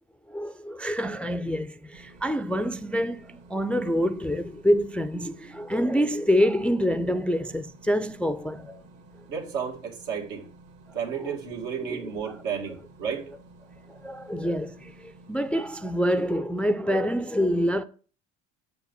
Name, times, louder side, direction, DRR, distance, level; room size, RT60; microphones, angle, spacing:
voice 1, 0.3-8.8 11.2-11.4 11.8-12.4 13.9-17.8, equal, 5° left, 0.3 m, -26 dB
sound 1, 1.9-16.3, right 2 dB, 55° right, 1.6 m, -52 dB
voice 2, 9.3-10.4 10.9-13.2, right 7 dB, 85° right, 2.2 m, -32 dB
7.0 x 5.2 x 5.2 m
hypercardioid pair, 70°, 37 cm